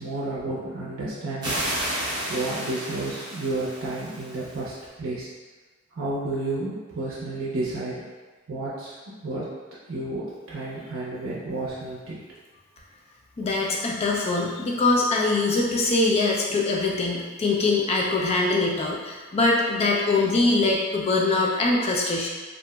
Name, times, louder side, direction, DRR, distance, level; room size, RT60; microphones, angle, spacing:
voice 1, 0.0-1.6 2.3-5.3 5.9-8.0 8.5-8.9 9.2-9.5 9.9-12.2, right 2 dB, 75° right, -7 dB, 0.5 m, -31 dB
sound 1, 1.4-4.7, right 1 dB, 20° right, 0.7 m, -32 dB
voice 2, 13.4-22.3, left 3 dB, 30° left, -3 dB, 0.3 m, -23 dB
2.8 x 2.5 x 2.2 m, 1.3 s
head